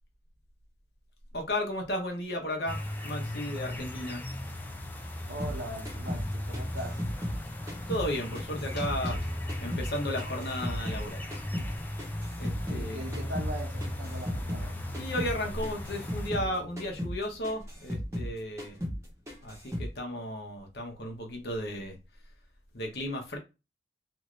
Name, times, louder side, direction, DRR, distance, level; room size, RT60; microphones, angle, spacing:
voice 1, 1.3-4.2 7.6-9.3 9.6-11.2 12.4-13.1 14.9-18.8 19.4-22.0 22.7-23.4, left 1 dB, 65° left, 0.9 m, -34 dB
sound 1, 2.7-16.3, left 1 dB, 10° left, 0.3 m, -37 dB
voice 2, 5.3-7.0 12.7-14.8, right 1 dB, 90° right, 0.9 m, -40 dB
sound 2, 5.4-8.1 8.3-11.0 11.3-14.7 14.9-15.4 15.6-18.3 18.6-19.0 19.3-19.9, equal, 15° right, 0.8 m, -36 dB
2.7 x 2.5 x 3.0 m
head